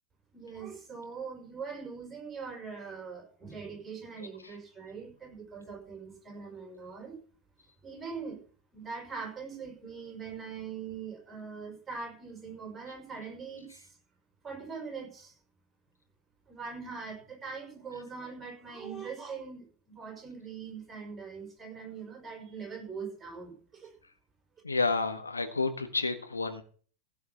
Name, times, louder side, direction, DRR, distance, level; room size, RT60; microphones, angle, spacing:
voice 1, 0.3-7.1 7.8-8.4 8.7-13.9 14.4-15.3 16.5-23.9, right 5 dB, 15° right, 2 dB, 5.9 m, -42 dB
voice 2, 24.6-26.6, left 3 dB, 80° left, 7 dB, 1.6 m, -30 dB
16.0 x 5.8 x 7.0 m, 0.43 s
figure-of-eight pair, 90°, 0 cm